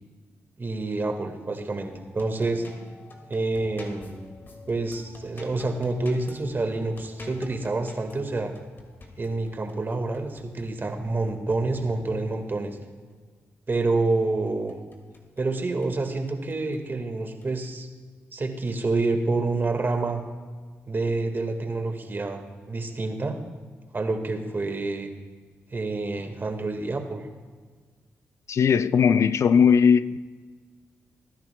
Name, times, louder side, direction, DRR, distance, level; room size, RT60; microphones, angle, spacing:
voice 1, 0.6-2.6 3.3-4.2 4.7-8.5 9.2-12.8 13.7-14.8 15.4-17.9 18.3-20.2 20.9-23.4 23.9-25.1 25.7-27.2, right 3 dB, 40° right, 1.7 m, -28 dB
sound 1, 1.8-12.4 14.2-15.5 15.8-16.8 17.4-17.7, left 1 dB, 40° left, 2.2 m, -48 dB
voice 2, 28.5-30.2, left 6 dB, 60° left, 0.4 m, -19 dB
20.0 x 10.5 x 2.3 m
supercardioid pair, 45°, 5 cm